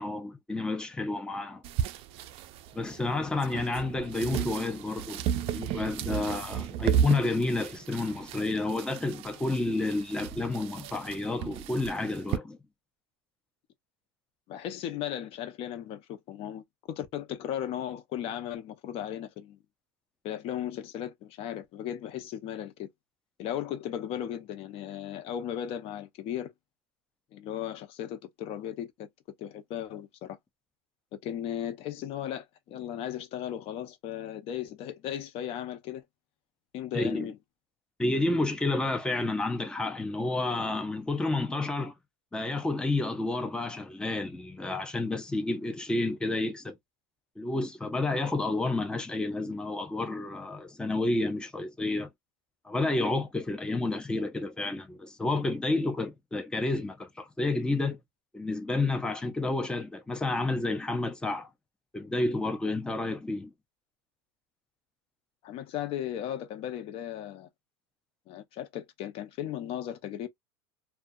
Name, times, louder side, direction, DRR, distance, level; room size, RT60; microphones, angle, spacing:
voice 1, 0.0-1.6 2.7-12.6 36.9-37.3 38.0-41.9 42.3-46.7 47.4-52.1 52.6-58.0 58.3-61.5 61.9-63.5, left 2 dB, 5° left, 0.5 m, -30 dB
sound 1, 1.6-12.4, right 9 dB, 45° right, 0.4 m, -34 dB
voice 2, 14.5-19.6 20.2-22.9 23.4-26.5 27.3-29.1 29.4-30.4 31.2-36.1 36.7-37.4 65.4-67.5 68.3-70.3, left 10 dB, 45° left, 0.6 m, -36 dB
2.3 x 2.3 x 2.6 m
supercardioid pair, 120°, 14 cm